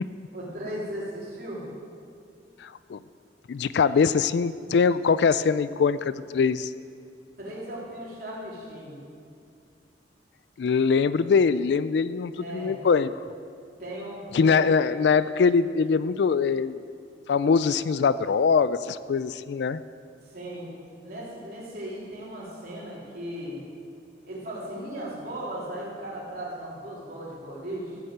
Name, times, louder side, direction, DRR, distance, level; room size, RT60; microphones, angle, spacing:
voice 1, 0.3-1.7 7.4-9.0 12.4-12.7 13.8-14.7 20.3-20.7 21.0-23.6 24.2-28.0, right 1 dB, 55° right, -5 dB, 3.6 m, -37 dB
voice 2, 2.6-3.0 3.5-6.7 10.6-13.1 14.3-16.8 17.3-19.8, left 5 dB, 70° left, 15 dB, 0.3 m, -23 dB
15.0 x 6.5 x 8.0 m, 2.3 s
head